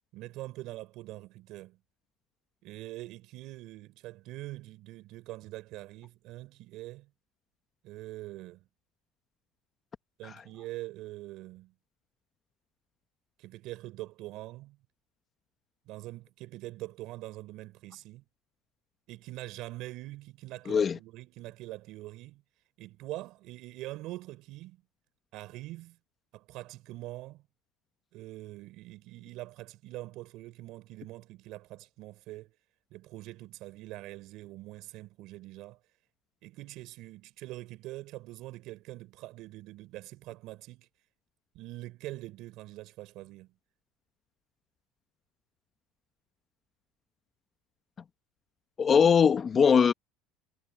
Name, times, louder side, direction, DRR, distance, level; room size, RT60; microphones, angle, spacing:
voice 1, 0.1-1.8 2.6-7.1 7.8-8.7 10.2-11.7 13.4-14.8 15.8-18.3 19.1-22.4 22.8-24.8 25.3-26.0 26.3-27.4 28.1-32.5 32.9-35.8 36.4-40.9 41.5-43.5, right 18 dB, 60° right, 5.2 m, -44 dB
voice 2, 20.7-21.0 48.8-49.9, left 6 dB, 30° left, 1.0 m, -21 dB
cardioid pair, 130°, 0 cm